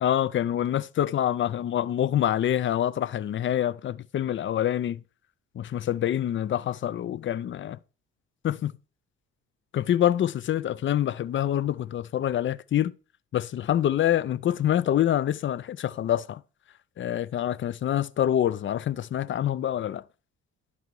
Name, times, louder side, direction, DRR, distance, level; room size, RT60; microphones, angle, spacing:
voice 1, 0.0-5.0 5.6-7.8 8.4-8.7 9.7-12.9 13.3-16.4 17.0-20.0, left 11 dB, 40° left, 0.4 m, -26 dB
11.0 x 4.0 x 4.6 m
cardioid pair, 90°, 30 cm